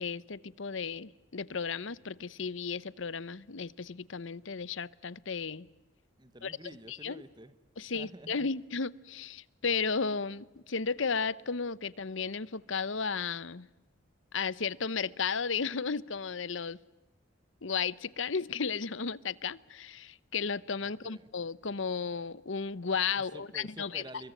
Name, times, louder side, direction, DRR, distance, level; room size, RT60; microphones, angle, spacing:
voice 1, 0.0-5.7 6.4-6.5 6.9-7.2 7.8-13.7 14.3-16.8 17.6-24.0, left 5 dB, 75° left, 20 dB, 0.8 m, -34 dB
voice 2, 6.2-7.5 7.9-8.5 20.8-21.3 23.2-24.3, right 1 dB, 20° right, 13 dB, 1.5 m, -49 dB
28.5 x 23.0 x 9.1 m, 1.0 s
head